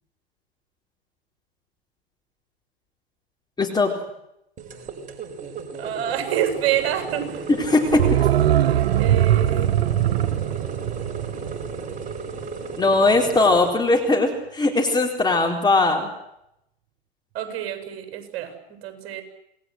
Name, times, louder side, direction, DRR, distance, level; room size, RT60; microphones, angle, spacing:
voice 1, 3.6-3.9 7.7-8.3 12.8-16.1, left 2 dB, 15° left, 2 dB, 4.0 m, -20 dB
sound 1, 4.6-13.7, right 4 dB, 25° right, 5.1 m, -35 dB
voice 2, 5.8-7.5 8.6-9.8 17.3-19.2, right 11 dB, 45° right, 7 dB, 7.8 m, -27 dB
sound 2, 7.9-12.6 12.9-13.0, right 11 dB, 75° right, 1.3 m, -21 dB
28.0 x 20.0 x 8.0 m, 0.81 s
hypercardioid pair, 105°, 31 cm